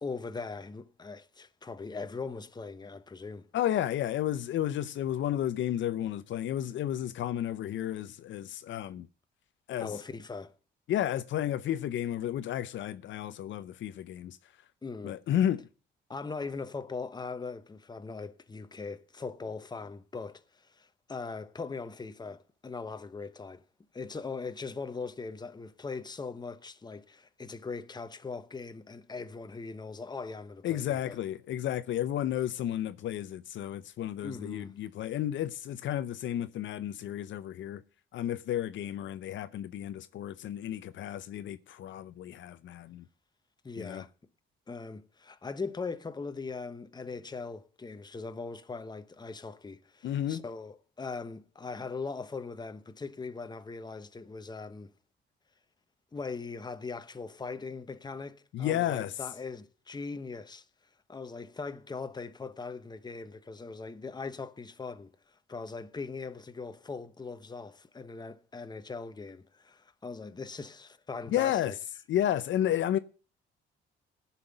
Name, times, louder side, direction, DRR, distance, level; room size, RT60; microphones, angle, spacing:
voice 1, 0.0-3.5 9.8-10.5 14.8-15.2 16.1-23.6 23.9-31.2 34.2-34.7 43.6-44.1 44.7-54.9 56.1-60.6 61.1-71.7, left 4 dB, 20° left, 1.0 m, -40 dB
voice 2, 3.5-9.1 9.7-9.9 10.9-14.4 15.0-15.7 30.6-37.8 38.1-43.1 43.8-44.0 50.0-50.4 58.5-59.1 71.3-71.7 72.1-73.0, left 11 dB, 70° left, 0.6 m, -32 dB
15.0 x 5.8 x 7.9 m
cardioid pair, 90°, 20 cm